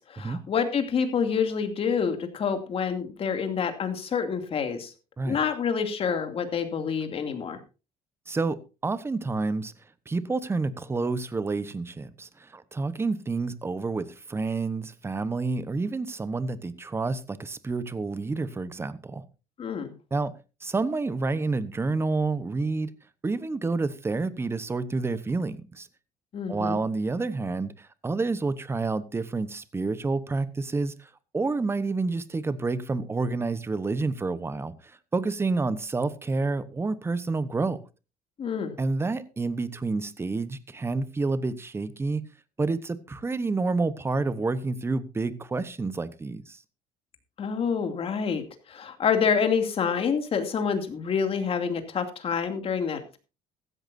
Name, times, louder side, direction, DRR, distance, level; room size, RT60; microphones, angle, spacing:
voice 1, 0.1-4.9 5.2-7.6 19.6-19.9 26.3-26.8 38.4-38.7 47.4-53.2, left 6 dB, 40° left, 2.6 m, -27 dB
voice 2, 8.3-9.7 10.1-19.2 20.1-20.3 20.6-22.9 23.2-25.9 26.5-37.8 38.8-42.2 42.6-46.6, right 3 dB, 15° right, 1.0 m, -29 dB
15.5 x 13.5 x 2.7 m
cardioid pair, 130°, 15 cm